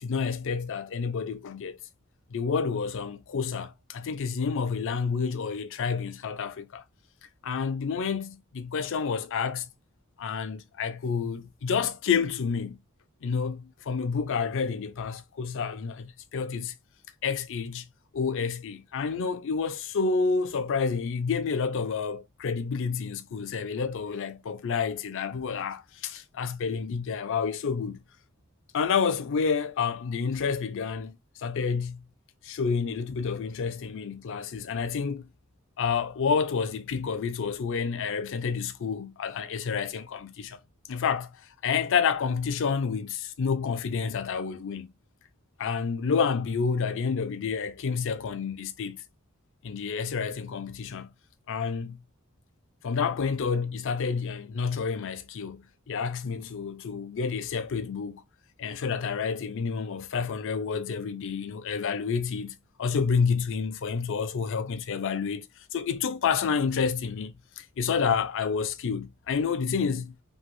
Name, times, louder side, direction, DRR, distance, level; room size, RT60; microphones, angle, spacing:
voice 1, 0.0-1.8 2.3-6.8 7.4-9.7 10.2-12.8 13.2-16.7 17.2-17.8 18.1-28.0 28.7-32.0 32.4-35.2 35.8-40.6 40.9-41.3 41.6-44.9 45.6-49.0 49.6-51.1 51.5-52.0 52.8-58.2 58.6-65.5 65.7-70.1, left 5 dB, 60° left, 0.4 m, -29 dB
3.0 x 3.0 x 2.2 m
head